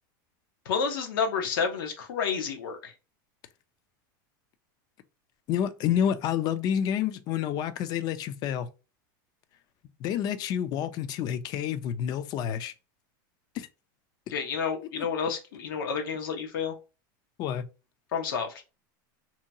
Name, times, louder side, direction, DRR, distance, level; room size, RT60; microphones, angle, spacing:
voice 1, 0.7-2.9 14.3-16.7 18.1-18.7, left 6 dB, 85° left, 0.8 m, -30 dB
voice 2, 5.5-8.7 10.0-12.7 13.5-13.7 15.0-15.1 17.4-17.6, left 9 dB, 35° left, 0.3 m, -29 dB
2.8 x 2.2 x 2.6 m
supercardioid pair, 140°, 11 cm